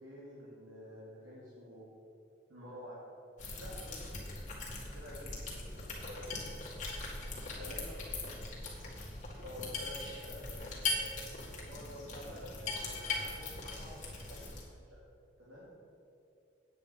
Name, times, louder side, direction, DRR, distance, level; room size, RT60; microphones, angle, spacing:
voice 1, 0.0-1.9 2.5-3.0 3.6-4.3 4.7-6.4 7.6-7.7 9.4-11.2 11.5-14.9 15.4-15.7, equal, 85° right, -8 dB, 2.7 m, -49 dB
sound 1, 3.4-14.6, left 3 dB, 40° left, 2.0 m, -40 dB
voice 2, 7.1-8.3, left 1 dB, 20° left, -3 dB, 1.4 m, -55 dB
9.1 x 8.7 x 5.2 m, 2.6 s
head